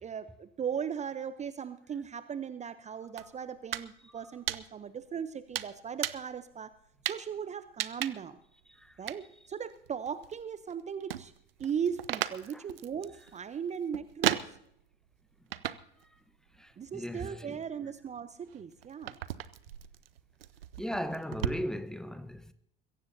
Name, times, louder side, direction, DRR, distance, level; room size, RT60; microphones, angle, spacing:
voice 1, 0.0-6.7 7.0-8.4 9.0-11.3 11.6-14.6 16.8-19.2, right 7 dB, 25° right, 0.8 m, -38 dB
sound 1, 3.2-3.9 4.2-5.0 5.6-6.4 7.0-7.3 7.8-8.4 9.1-9.2 9.7-10.7 11.0-14.9 15.5-16.0 16.3-17.0 17.6-21.5, right 11 dB, 75° right, 0.8 m, -36 dB
voice 2, 16.5-17.6 20.8-22.5, equal, ahead, 1.0 m, -38 dB
22.0 x 17.0 x 2.8 m
figure-of-eight pair, 70°, 29 cm